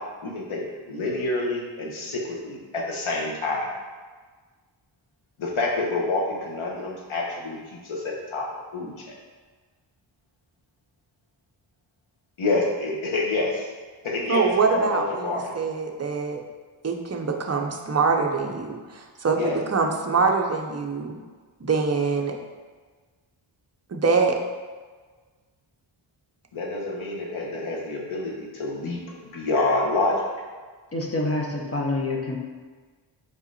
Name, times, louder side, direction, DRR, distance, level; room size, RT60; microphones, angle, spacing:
voice 1, 0.2-3.7 5.4-8.5 8.7-9.1 12.4-13.7 14.0-15.5 19.3-19.5 26.5-29.0 29.3-30.3, left 2 dB, 85° left, -2 dB, 1.3 m, -27 dB
voice 2, 14.2-16.4 16.8-21.2 21.6-22.3 23.9-24.4, right 4 dB, 35° right, 2 dB, 0.6 m, -24 dB
voice 3, 30.9-32.4, left 2 dB, 30° left, 0 dB, 0.8 m, -27 dB
5.5 x 4.9 x 4.1 m, 1.4 s
wide cardioid pair, 160°, 47 cm